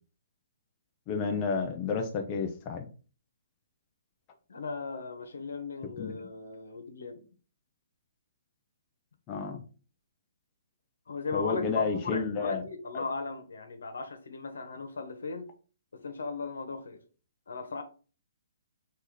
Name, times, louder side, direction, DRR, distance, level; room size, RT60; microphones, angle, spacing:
voice 1, 1.1-2.9 6.0-6.2 9.3-9.6 11.3-12.6 12.9-13.0, left 5 dB, 20° left, 0.5 m, -31 dB
voice 2, 4.5-7.2 11.1-15.5 15.9-17.0 17.5-17.8, left 4 dB, 85° left, 1.1 m, -37 dB
4.8 x 2.7 x 3.8 m
hypercardioid pair, 170°, 0 cm